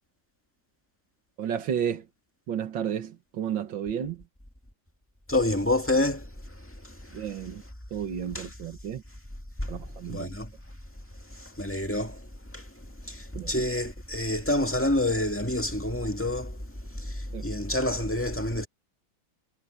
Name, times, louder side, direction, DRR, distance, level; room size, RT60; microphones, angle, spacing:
voice 1, 1.4-2.0 2.5-4.2 7.1-7.6 7.9-9.0 9.7-10.3 13.3-13.5 17.3-17.5, right 8 dB, 85° right, 2.2 m, -32 dB
voice 2, 5.3-6.3 8.3-8.5 9.6-9.7 10.1-10.5 11.4-12.2 12.5-12.6 13.1-16.6 17.0-18.7, left 1 dB, 5° left, 1.9 m, -28 dB
omnidirectional pair, 2.0 m